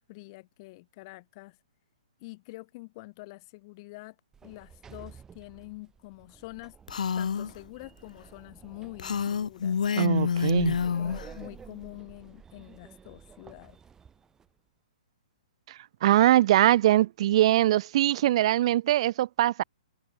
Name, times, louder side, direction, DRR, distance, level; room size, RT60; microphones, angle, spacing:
voice 1, 0.0-1.6 2.2-4.2 4.4-6.8 7.2-9.8 10.5-13.8, left 23 dB, 40° left, 1.8 m, -46 dB
Sliding door, 4.3-14.5, right 6 dB, 15° right, 6.8 m, -51 dB
Female speech woman speaking, 6.9-7.5 9.0-11.3, left 7 dB, 80° left, 0.4 m, -27 dB
voice 2, 10.0-10.8 15.7-19.6, right 13 dB, 50° right, 0.3 m, -22 dB
open air
hypercardioid pair, 135°, 4 cm